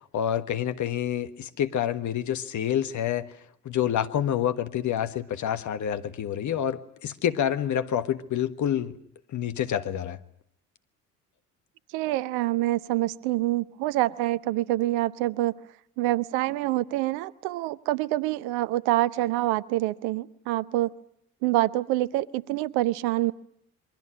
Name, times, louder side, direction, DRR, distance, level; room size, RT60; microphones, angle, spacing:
voice 1, 0.1-3.3 3.6-9.0 9.3-10.2, left 10 dB, 40° left, 10 dB, 1.5 m, -28 dB
voice 2, 11.9-15.6 16.0-20.9 21.4-23.3, right 16 dB, 55° right, 18 dB, 0.9 m, -26 dB
28.0 x 23.0 x 6.3 m, 0.73 s
figure-of-eight pair, 60°, 44 cm